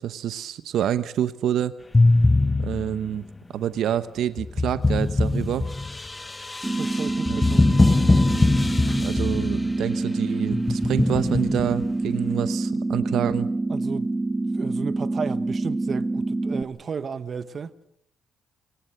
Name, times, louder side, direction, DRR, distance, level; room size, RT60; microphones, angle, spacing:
voice 1, 0.0-1.7 2.6-3.2 3.5-5.7 7.3-7.4 8.9-13.5, right 10 dB, 75° right, 0.8 m, -27 dB
sound 1, 1.9-3.1 4.4-9.7 10.5-11.8, left 2 dB, 20° left, 0.8 m, -22 dB
sound 2, 6.6-16.6, right 2 dB, 15° right, 1.5 m, -26 dB
voice 2, 6.7-7.7 13.7-14.1 14.5-17.7, right 6 dB, 45° right, 1.0 m, -33 dB
28.5 x 18.0 x 6.6 m
cardioid pair, 90°, 0 cm